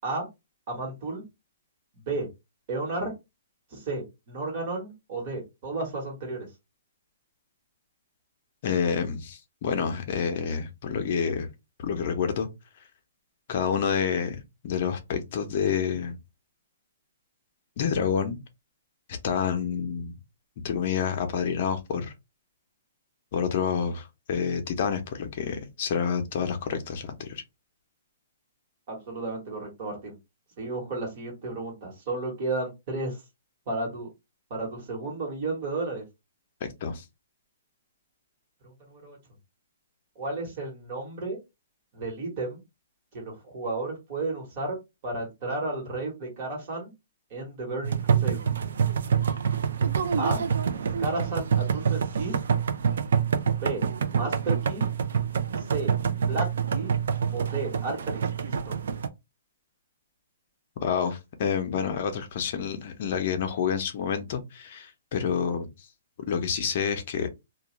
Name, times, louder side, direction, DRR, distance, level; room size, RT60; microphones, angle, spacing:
voice 1, 0.7-1.2 2.1-2.3 2.7-3.1 3.7-6.5 28.9-30.2 30.6-33.2 33.7-34.1 34.5-36.0 38.6-39.2 40.2-41.4 41.9-42.6 43.1-44.8 45.0-46.9 47.3-48.4 50.2-50.4 51.0-52.4 53.6-53.8 54.2-54.8 55.6-55.9 56.3-56.9 57.3-58.8, right 2 dB, 35° right, 1.2 m, -33 dB
voice 2, 8.6-11.5 11.8-12.5 13.5-16.2 17.8-18.4 19.2-20.1 20.6-22.1 23.3-27.4 36.6-37.0 60.8-65.7 66.3-67.3, left 7 dB, 40° left, 0.6 m, -28 dB
sound 1, 47.8-59.1, right 7 dB, 70° right, 0.4 m, -26 dB
2.4 x 2.2 x 2.9 m
hypercardioid pair, 165°, 0 cm